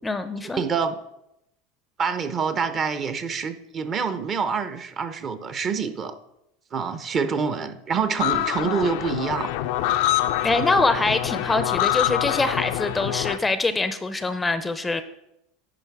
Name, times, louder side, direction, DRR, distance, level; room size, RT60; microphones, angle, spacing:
voice 1, 0.0-0.6 10.4-15.0, left 3 dB, 15° left, 11 dB, 0.5 m, -24 dB
voice 2, 0.6-1.0 2.0-6.1 6.7-9.5, right 5 dB, 35° right, 10 dB, 0.7 m, -26 dB
sound 1, 8.2-13.4, left 13 dB, 70° left, 0.4 m, -25 dB
10.0 x 3.5 x 4.7 m, 0.84 s
supercardioid pair, 105°, 0 cm